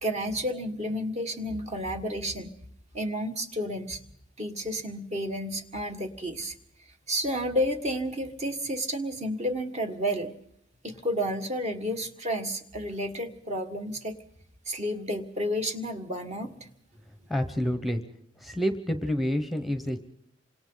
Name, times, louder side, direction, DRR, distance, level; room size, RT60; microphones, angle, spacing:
voice 1, 0.0-2.6 2.9-4.0 4.4-6.6 7.1-10.4 10.8-14.2 14.7-16.7, equal, 35° right, 5 dB, 1.9 m, -31 dB
voice 2, 17.3-18.0 18.4-20.0, equal, ahead, 8 dB, 1.1 m, -28 dB
28.0 x 26.0 x 4.0 m, 0.69 s
head